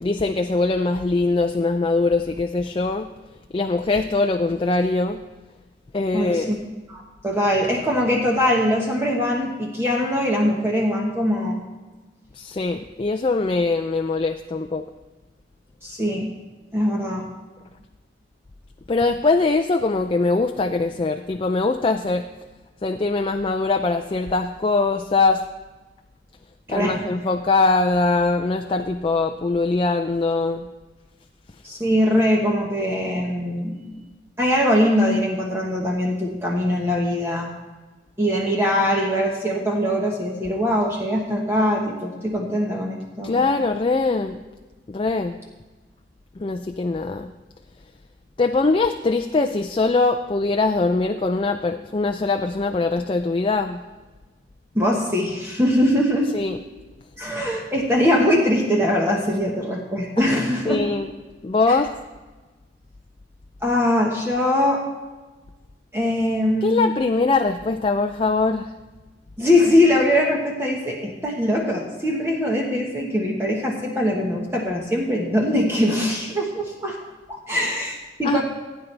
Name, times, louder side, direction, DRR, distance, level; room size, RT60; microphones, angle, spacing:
voice 1, 0.0-3.1 3.5-5.2 5.9-6.5 12.4-14.9 18.9-22.3 22.8-25.4 26.7-30.7 43.2-44.4 44.9-45.4 46.4-47.3 48.4-53.8 56.3-56.6 60.2-61.1 61.4-61.9 66.6-68.7 78.2-78.4, left 3 dB, 30° left, 6 dB, 0.4 m, -22 dB
voice 2, 6.1-6.5 6.9-11.6 15.8-16.3 16.7-17.3 26.7-27.0 31.6-33.8 34.4-37.5 38.2-43.4 54.7-56.3 57.2-60.8 61.7-61.8 63.6-64.8 65.9-66.8 69.4-77.0 77.3-78.4, left 1 dB, 15° right, -2 dB, 1.3 m, -22 dB
16.5 x 9.2 x 3.3 m, 1.2 s
head